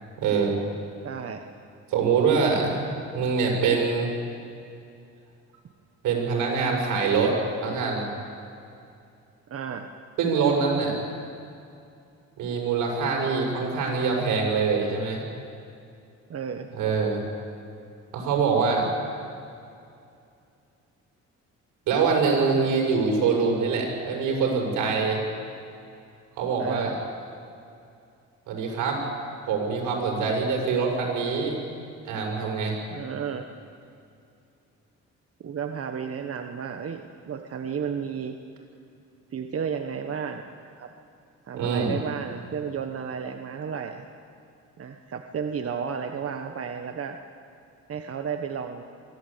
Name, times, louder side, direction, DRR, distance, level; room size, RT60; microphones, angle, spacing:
voice 1, 0.2-0.6 1.9-2.9 3.1-4.1 6.0-8.1 10.2-11.0 12.4-15.2 16.7-17.2 18.1-18.9 21.9-25.2 26.4-26.9 28.5-29.0 29.5-31.5 32.0-32.8 41.6-41.9, right 5 dB, 85° right, 0 dB, 6.2 m, -24 dB
voice 2, 1.0-1.4 9.5-9.9 16.3-16.7 22.4-22.7 26.6-27.0 32.9-33.4 35.4-38.4 39.3-40.9 41.5-44.1 44.8-47.2 47.9-48.8, right 7 dB, 50° right, 5 dB, 1.4 m, -33 dB
24.5 x 15.5 x 8.6 m, 2.5 s
cardioid pair, 90°, 30 cm